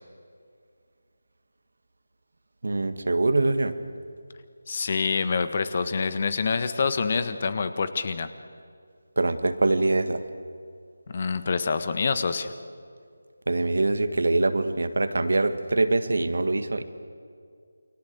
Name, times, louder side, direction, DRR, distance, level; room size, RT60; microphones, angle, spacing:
voice 1, 2.6-3.8 9.2-10.2 13.5-16.8, right 2 dB, 65° right, 10 dB, 1.8 m, -24 dB
voice 2, 4.7-8.3 11.1-12.5, left 5 dB, 40° left, 11 dB, 1.5 m, -26 dB
29.0 x 24.5 x 8.0 m, 2.2 s
figure-of-eight pair, 160°, 0 cm